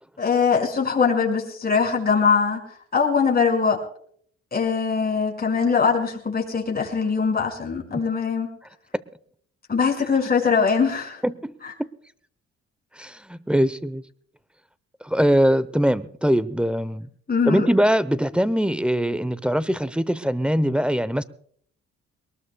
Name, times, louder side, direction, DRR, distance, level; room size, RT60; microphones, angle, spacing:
voice 1, 0.2-3.8 4.5-8.5 9.7-11.2 11.6-11.7 17.3-17.7, left 5 dB, 30° left, 1 dB, 5.7 m, -22 dB
voice 2, 13.0-14.0 15.0-17.1 17.5-21.2, equal, 5° right, 16 dB, 0.7 m, -22 dB
22.5 x 19.5 x 2.3 m, 0.62 s
cardioid pair, 90°, 30 cm